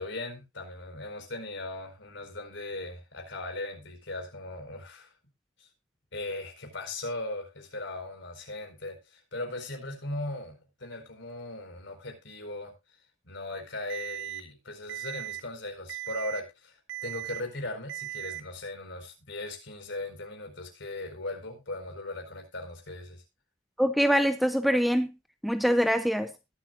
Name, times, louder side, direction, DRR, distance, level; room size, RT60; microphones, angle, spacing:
voice 1, 0.0-5.1 5.6-5.7 6.1-12.7 13.2-23.2, left 2 dB, 60° left, 4.5 m, -38 dB
Alarm, 13.9-14.4 14.9-15.4 15.9-16.4 16.9-17.4 17.9-18.4, right 15 dB, 65° right, 2.1 m, -37 dB
voice 2, 23.8-25.1 25.4-26.3, equal, ahead, 0.5 m, -24 dB
20.5 x 7.9 x 2.5 m
head